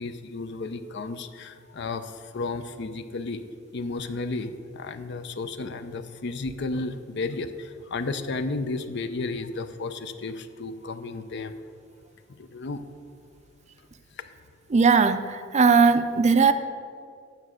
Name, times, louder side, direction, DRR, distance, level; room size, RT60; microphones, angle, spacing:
voice 1, 0.0-3.4 3.7-11.6 12.3-12.8 14.2-14.3, left 3 dB, 60° left, 10 dB, 0.5 m, -33 dB
voice 2, 14.7-16.5, right 5 dB, 35° right, 10 dB, 0.4 m, -19 dB
9.4 x 6.6 x 6.2 m, 2.3 s
head